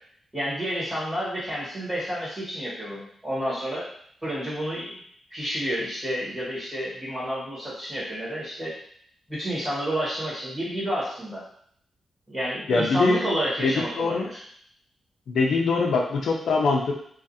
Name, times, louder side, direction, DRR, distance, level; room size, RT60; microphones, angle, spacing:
voice 1, 0.3-3.9 4.2-5.0 5.3-8.7 9.3-11.4 12.3-14.4, equal, 15° right, -9 dB, 1.5 m, -30 dB
voice 2, 12.7-13.2 13.6-14.3 15.3-16.9, left 3 dB, 75° left, 0 dB, 0.4 m, -23 dB
2.4 x 2.4 x 2.6 m, 0.63 s
wide cardioid pair, 125°, 0 cm